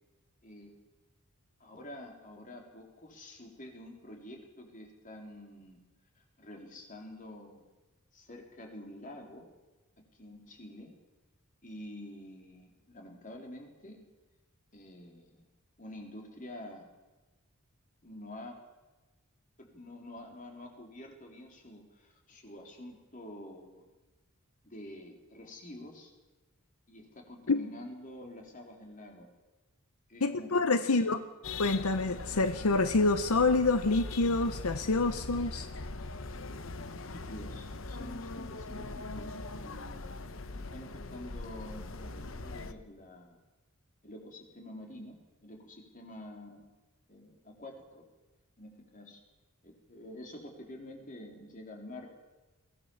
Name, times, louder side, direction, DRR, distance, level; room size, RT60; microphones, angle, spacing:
voice 1, 1.6-5.8 6.2-7.6 8.1-9.5 10.0-10.9 11.6-14.0 14.7-15.5 15.8-16.9 18.0-18.6 19.6-23.9 24.6-26.1 26.9-29.3 30.1-31.2 36.3-36.4 36.8-40.3 40.5-43.4 44.0-46.7 47.1-48.1 48.6-49.2 49.6-52.2, left 1 dB, 40° left, 1 dB, 3.9 m, -48 dB
voice 2, 30.2-31.2 31.6-35.7, left 3 dB, 85° left, 10 dB, 0.9 m, -27 dB
sound 1, 31.4-42.7, left 3 dB, 65° left, 1.1 m, -41 dB
22.0 x 16.5 x 7.2 m, 1.1 s
head